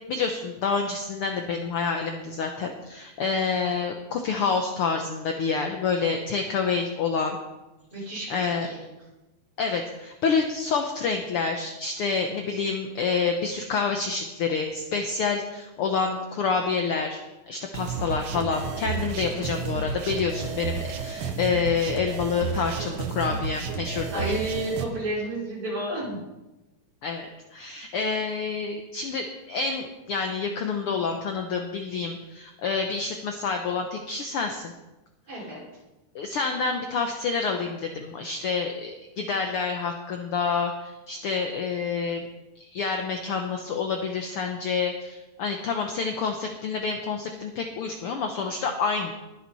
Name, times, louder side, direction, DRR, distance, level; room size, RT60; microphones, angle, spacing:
voice 1, 0.1-7.4 8.3-8.7 9.6-17.2 17.5-24.4 27.0-34.7 35.3-35.4 36.1-38.9 39.2-42.3 42.7-49.1, left 5 dB, 75° left, 4 dB, 1.3 m, -28 dB
voice 2, 7.9-8.8 24.1-26.2 35.3-35.6, right 1 dB, 40° right, -6 dB, 5.7 m, -31 dB
sound 1, 17.7-24.8, right 6 dB, 85° right, 1.1 m, -32 dB
20.5 x 7.7 x 4.1 m, 1.0 s
omnidirectional pair, 3.7 m